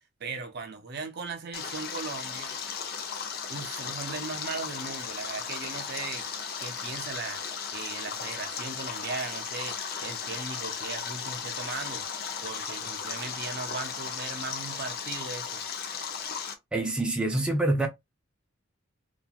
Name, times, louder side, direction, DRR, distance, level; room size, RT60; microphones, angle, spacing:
voice 1, 0.2-2.6 3.5-6.3 6.6-7.4 7.7-12.1 12.4-15.6, right 4 dB, 55° right, 0.5 m, -38 dB
Stream, 1.5-16.5, left 6 dB, 50° left, 0.5 m, -36 dB
voice 2, 16.7-17.9, right 2 dB, 5° right, 0.4 m, -26 dB
2.9 x 2.3 x 2.4 m
head